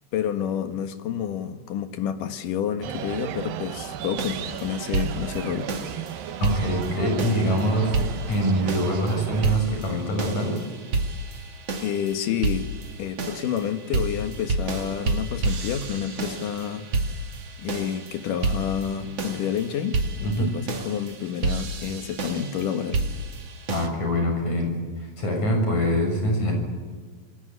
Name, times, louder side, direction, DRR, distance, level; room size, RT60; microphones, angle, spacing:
voice 1, 0.1-5.7 11.8-12.7 13.0-16.8 17.6-23.0, left 8 dB, 70° left, 8 dB, 3.0 m, -29 dB
sound 1, 2.8-9.6, right 10 dB, 85° right, 2.8 m, -34 dB
sound 2, 4.2-23.9, right 2 dB, 45° right, 3.2 m, -30 dB
voice 2, 6.4-8.0 8.3-10.6 20.2-20.5 23.7-26.5, equal, 55° left, 3 dB, 8.0 m, -24 dB
27.5 x 20.5 x 9.8 m, 1.5 s
omnidirectional pair, 4.0 m